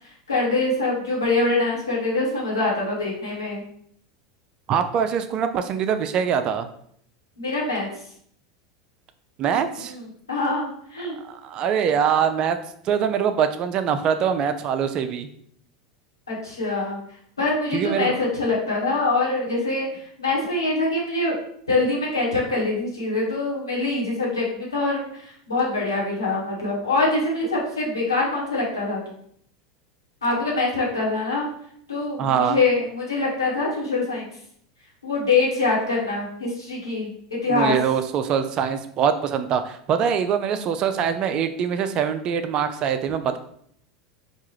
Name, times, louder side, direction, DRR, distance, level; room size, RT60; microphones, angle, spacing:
voice 1, 0.3-3.6 7.4-7.9 9.8-10.0 10.3-11.2 16.3-17.0 17.4-19.9 20.2-21.3 21.7-29.0 30.2-31.5 31.9-34.3 35.0-37.1 37.4-37.7, left 3 dB, 85° left, -4 dB, 1.2 m, -24 dB
voice 2, 4.7-6.7 9.4-9.9 11.2-12.6 12.8-15.3 17.7-18.2 32.2-32.6 37.5-43.4, right 7 dB, 40° right, 9 dB, 0.3 m, -23 dB
4.5 x 2.4 x 3.0 m, 0.66 s
figure-of-eight pair, 80°, 2 cm